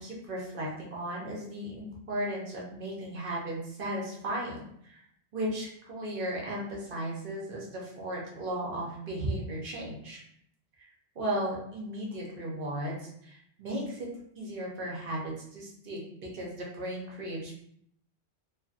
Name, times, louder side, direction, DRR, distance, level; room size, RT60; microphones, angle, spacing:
voice 1, 0.0-5.0 5.3-10.2 11.2-14.1 14.4-17.6, right 1 dB, 55° right, -3 dB, 0.8 m, -35 dB
2.7 x 2.4 x 2.4 m, 0.70 s
omnidirectional pair, 1.2 m